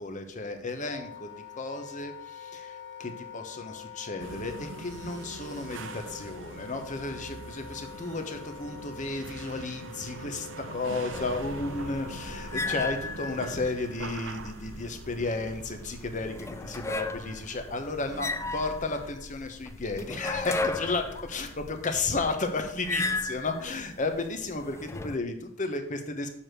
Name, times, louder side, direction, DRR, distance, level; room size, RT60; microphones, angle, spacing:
voice 1, 0.0-26.3, left 3 dB, 40° left, 6 dB, 1.1 m, -33 dB
Wind instrument woodwind instrument, 0.8-12.7, left 7 dB, 75° left, 2.2 m, -46 dB
sound 1, 4.2-19.1, right 4 dB, 75° right, 0.6 m, -44 dB
sound 2, 11.1-25.2, left 3 dB, 15° left, 0.4 m, -36 dB
7.1 x 4.7 x 6.7 m, 0.67 s
head